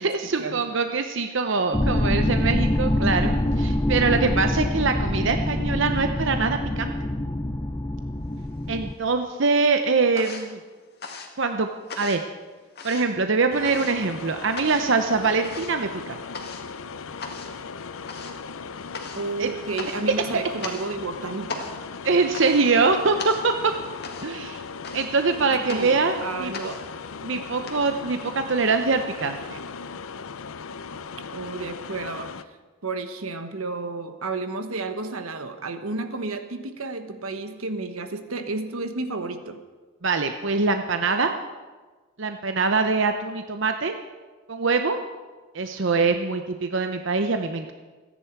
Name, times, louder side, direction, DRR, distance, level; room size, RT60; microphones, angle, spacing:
voice 1, 0.0-6.9 8.7-10.6 11.4-11.7 12.0-12.2 12.8-16.2 19.4-19.5 22.0-23.7 24.2-24.6 24.9-26.7 27.2-29.6 40.0-41.3 42.2-43.9 44.5-45.0 45.5-47.7, right 4 dB, 60° right, 6 dB, 0.8 m, -23 dB
sound 1, 1.7-8.9, left 1 dB, 15° left, 0.5 m, -25 dB
sound 2, 8.4-9.2 9.5-27.7, left 4 dB, 50° left, 2.0 m, -40 dB
sound 3, 13.5-32.4, left 5 dB, 75° left, 0.6 m, -38 dB
voice 2, 19.1-21.7 25.7-26.7 31.3-32.4 32.8-39.6, right 3 dB, 85° right, 8 dB, 1.4 m, -31 dB
28.5 x 10.0 x 4.7 m, 1.3 s
head